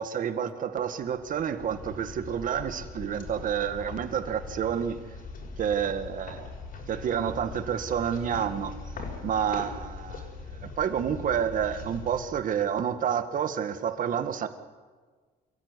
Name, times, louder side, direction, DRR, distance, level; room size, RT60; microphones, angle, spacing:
voice 1, 0.0-5.0 5.6-6.5 6.9-8.7 9.2-10.3 10.6-14.5, right 8 dB, 50° right, 10 dB, 1.7 m, -29 dB
sound 1, 1.0-13.1, left 4 dB, 55° left, 6.5 m, -41 dB
27.0 x 14.5 x 9.8 m, 1.5 s
cardioid pair, 110°, 17 cm